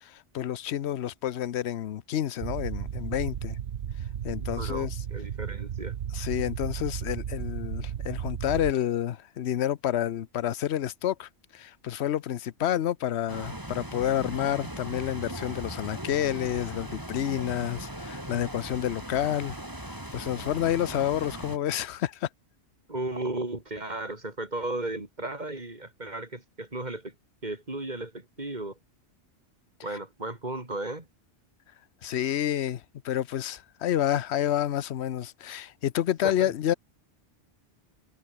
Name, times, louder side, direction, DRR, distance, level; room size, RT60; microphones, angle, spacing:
voice 1, 0.0-3.6 4.2-5.0 6.1-19.6 19.9-22.3 29.9-30.0 32.0-36.7, left 11 dB, 65° left, 1.0 m, -29 dB
sound 1, 2.4-8.7, right 9 dB, 65° right, 1.1 m, -34 dB
voice 2, 4.5-6.0 22.9-27.2 27.4-28.8 29.8-31.1 36.2-36.5, right 2 dB, 35° right, 3.9 m, -35 dB
sound 2, 13.3-21.6, right 1 dB, 15° right, 4.5 m, -39 dB
omnidirectional pair, 1.2 m